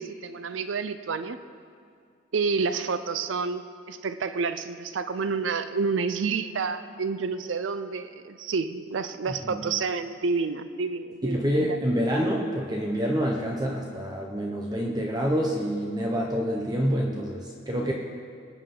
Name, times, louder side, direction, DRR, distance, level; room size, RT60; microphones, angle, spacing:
voice 1, 0.0-1.4 2.3-11.7, right 4 dB, 85° right, 11 dB, 0.5 m, -29 dB
voice 2, 9.3-9.6 11.2-17.9, equal, 20° right, -1 dB, 0.9 m, -27 dB
22.0 x 9.0 x 3.8 m, 2.2 s
head